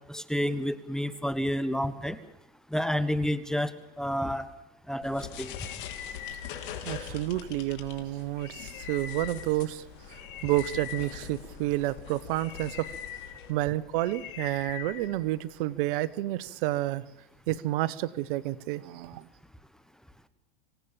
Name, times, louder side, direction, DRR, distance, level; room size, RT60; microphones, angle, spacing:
voice 1, 0.1-2.2 2.7-4.5 4.9-5.5, equal, ahead, 1.2 m, -30 dB
sound 1, 5.0-15.6, left 9 dB, 65° left, 3.6 m, -41 dB
voice 2, 6.8-9.8 10.1-12.9 13.5-17.0 17.5-19.3, right 16 dB, 60° right, 1.2 m, -30 dB
25.5 x 17.5 x 7.3 m
supercardioid pair, 120°, 29 cm